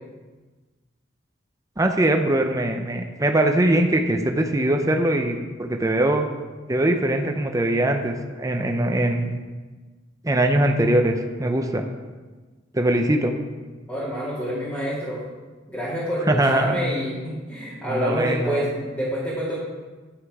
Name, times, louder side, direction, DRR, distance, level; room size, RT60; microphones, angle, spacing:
voice 1, 1.8-6.2 6.7-9.4 10.2-11.8 12.7-13.3 16.3-16.8 17.8-18.7, right 1 dB, 20° right, 4 dB, 0.6 m, -22 dB
voice 2, 13.9-15.2 15.7-19.6, equal, 10° left, -10 dB, 2.2 m, -27 dB
10.0 x 6.2 x 4.8 m, 1.3 s
head